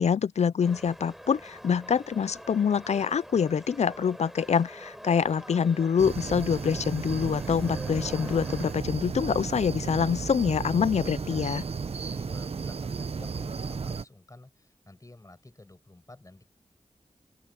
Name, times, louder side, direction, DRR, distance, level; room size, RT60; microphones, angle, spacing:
voice 1, 0.0-11.6, left 7 dB, 80° left, 0.5 m, -25 dB
sound 1, 0.6-8.7, equal, 5° right, 3.8 m, -45 dB
sound 2, 6.0-14.0, right 5 dB, 65° right, 0.7 m, -34 dB
voice 2, 11.2-16.4, left 2 dB, 30° left, 6.3 m, -51 dB
open air
wide cardioid pair, 65°, 11 cm